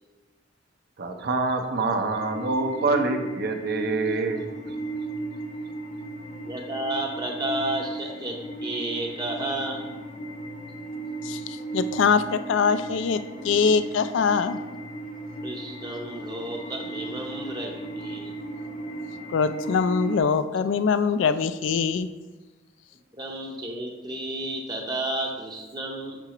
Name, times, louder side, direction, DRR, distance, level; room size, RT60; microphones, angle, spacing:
voice 1, 1.0-4.4, right 3 dB, 60° right, 4 dB, 0.6 m, -26 dB
sound 1, 2.1-20.2, right 2 dB, 35° left, 0.7 m, -36 dB
voice 2, 6.5-9.8 15.4-18.3 23.1-26.2, right 1 dB, 20° right, 0 dB, 0.7 m, -32 dB
voice 3, 11.2-14.6 19.3-22.1, left 5 dB, 75° left, 12 dB, 0.3 m, -23 dB
6.0 x 5.6 x 2.9 m, 1.2 s
head